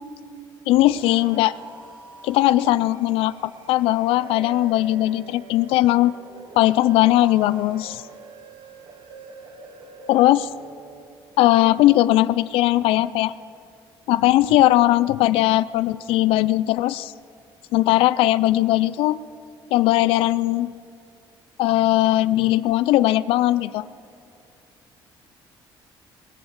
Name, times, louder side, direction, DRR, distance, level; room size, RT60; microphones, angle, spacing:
sound 1, 0.6-11.0, right 4 dB, 60° right, 1.9 m, -45 dB
voice 1, 0.7-1.5 2.2-6.1 6.6-8.0 10.1-10.5 11.4-13.3 14.1-17.1 17.7-19.2 19.7-20.7 21.6-23.8, left 15 dB, 85° left, 16 dB, 0.4 m, -19 dB
21.0 x 7.1 x 8.2 m, 2.5 s
cardioid pair, 135°, 9 cm